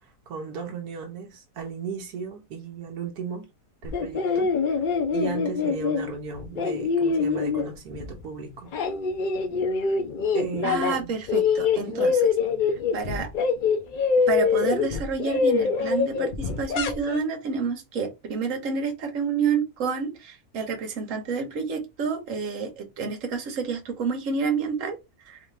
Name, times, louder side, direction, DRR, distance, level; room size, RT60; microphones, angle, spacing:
voice 1, 0.0-3.5 3.8-4.8 5.1-8.7 10.3-11.1 11.8-12.0, right 5 dB, 80° right, 1.3 m, -36 dB
sound 1, 3.8-8.2 8.5-11.0 11.3-17.2, left 5 dB, 80° left, 0.4 m, -24 dB
voice 2, 10.6-12.2 12.9-13.3 14.3-25.0 25.2-25.4, right 5 dB, 60° right, 1.3 m, -29 dB
3.5 x 3.2 x 3.2 m
omnidirectional pair, 1.6 m